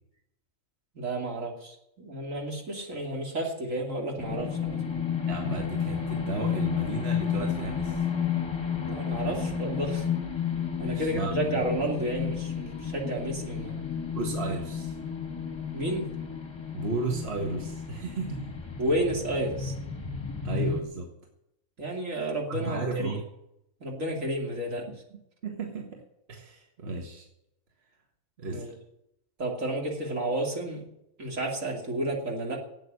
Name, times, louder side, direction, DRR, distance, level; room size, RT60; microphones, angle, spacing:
voice 1, 0.9-5.0 8.8-10.1 10.8-14.0 15.7-16.1 18.8-19.7 21.8-23.2 23.8-24.9 28.5-28.7 29.4-30.9 31.2-32.6, right 1 dB, 70° right, 0 dB, 3.1 m, -31 dB
sound 1, 4.2-20.8, left 7 dB, 20° left, 1.3 m, -32 dB
voice 2, 5.3-8.1 10.8-11.3 14.1-15.0 16.7-18.6 20.4-21.1 22.5-23.2 24.9-25.0 25.4-26.0 26.3-27.3 28.4-28.7, right 3 dB, 50° right, 1 dB, 1.8 m, -34 dB
12.0 x 8.5 x 9.8 m, 0.83 s
omnidirectional pair, 1.4 m